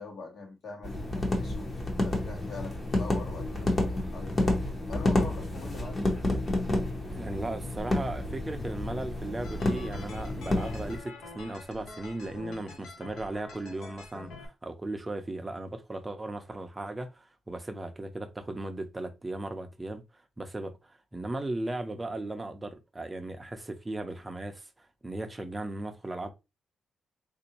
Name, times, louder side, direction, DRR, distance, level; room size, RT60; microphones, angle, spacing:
voice 1, 0.0-1.7 2.0-4.6 4.9-6.0, left 3 dB, 55° left, 1.2 m, -43 dB
sound 1, 0.8-11.0, left 1 dB, 25° left, 0.8 m, -30 dB
voice 2, 7.1-20.0 20.4-26.3, right 2 dB, 15° right, 0.5 m, -37 dB
sound 2, 9.4-14.5, left 3 dB, 80° left, 0.8 m, -46 dB
3.7 x 2.6 x 2.8 m
wide cardioid pair, 155°, 0 cm